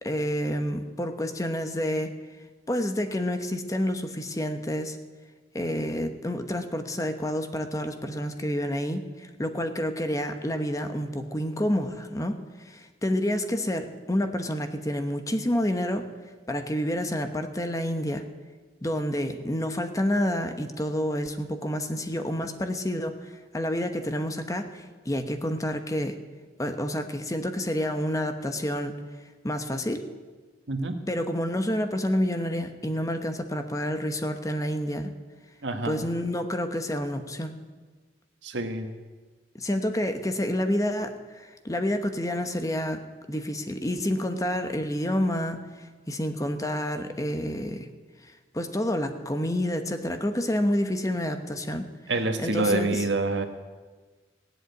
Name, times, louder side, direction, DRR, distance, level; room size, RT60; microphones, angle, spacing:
voice 1, 0.0-2.1 2.7-5.0 5.5-16.1 16.5-18.2 18.8-26.2 26.6-29.0 29.4-30.0 31.1-35.1 35.8-37.5 39.6-43.0 43.3-47.9 48.2-51.9 52.4-53.0, equal, 20° left, 7 dB, 1.0 m, -29 dB
voice 2, 30.7-31.0 35.6-36.0 38.4-38.9 52.1-53.4, right 2 dB, 80° right, 6 dB, 1.5 m, -27 dB
16.5 x 7.7 x 9.2 m, 1.4 s
head